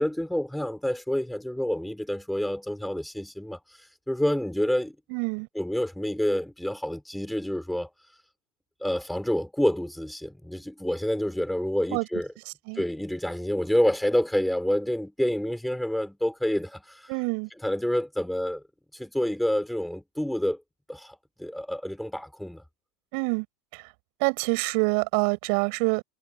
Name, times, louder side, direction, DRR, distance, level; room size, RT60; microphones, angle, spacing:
voice 1, 0.0-3.6 4.1-5.0 5.5-7.9 8.8-12.3 12.7-17.1 17.6-18.6 18.9-20.6 20.9-22.6, left 1 dB, ahead, 5.6 m, -28 dB
voice 2, 5.1-5.5 11.9-12.0 12.7-12.8 17.1-17.5 23.1-23.5 23.7-23.9 24.2-26.0, right 38 dB, 55° right, 7.7 m, -26 dB
hypercardioid pair, 90°, 0 cm